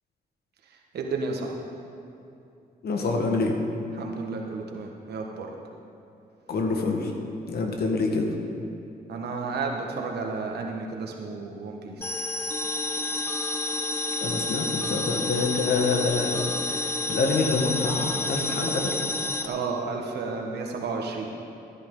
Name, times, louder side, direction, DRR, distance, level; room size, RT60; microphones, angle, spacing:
voice 1, 0.9-1.5 3.9-5.5 9.1-12.2 19.4-21.3, right 4 dB, 80° right, 1 dB, 1.4 m, -32 dB
voice 2, 2.8-3.5 6.5-7.1 7.5-8.3 14.2-16.8 17.1-18.9, left 3 dB, 70° left, 2 dB, 1.5 m, -26 dB
sound 1, 12.0-19.5, left 2 dB, 15° left, 0.8 m, -29 dB
14.0 x 10.5 x 3.8 m, 2.7 s
cardioid pair, 85°, 17 cm